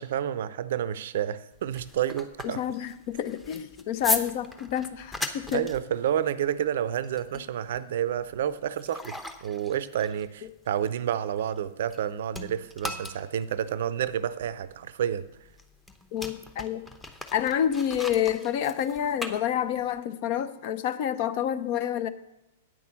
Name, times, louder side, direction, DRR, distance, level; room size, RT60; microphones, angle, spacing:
voice 1, 0.0-2.6 5.5-9.1 9.4-15.3, right 10 dB, 60° right, 16 dB, 0.5 m, -29 dB
sound 1, 1.5-12.0 12.3-20.0, left 1 dB, 10° left, 0.9 m, -38 dB
voice 2, 2.4-5.7 16.1-16.9 17.3-22.1, left 10 dB, 50° left, 13 dB, 0.7 m, -28 dB
9.0 x 6.2 x 7.1 m, 0.92 s
hypercardioid pair, 105°, 0 cm